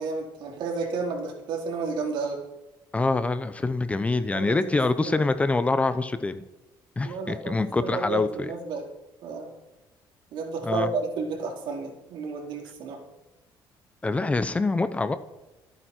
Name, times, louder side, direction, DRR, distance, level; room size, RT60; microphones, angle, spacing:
voice 1, 0.0-2.4 4.3-4.6 5.0-5.3 7.0-8.9 9.2-9.5 10.3-13.0, right 4 dB, 70° right, 0 dB, 4.2 m, -32 dB
voice 2, 2.9-6.4 7.0-8.5 10.6-10.9 14.0-15.2, left 3 dB, 15° left, 12 dB, 0.7 m, -25 dB
26.5 x 9.1 x 4.5 m, 1.0 s
cardioid pair, 135°, 8 cm